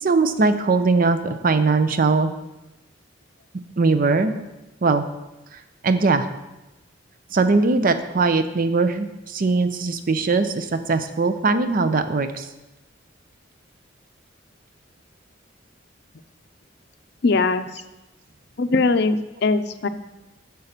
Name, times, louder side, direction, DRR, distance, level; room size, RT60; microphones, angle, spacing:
voice 1, 0.0-2.3 3.8-4.4 4.8-5.0 5.8-6.3 7.3-12.5, right 3 dB, 50° right, 10 dB, 0.6 m, -20 dB
voice 2, 17.2-17.7 18.6-19.9, left 3 dB, 60° left, 10 dB, 0.5 m, -20 dB
6.9 x 5.7 x 6.6 m, 1.0 s
head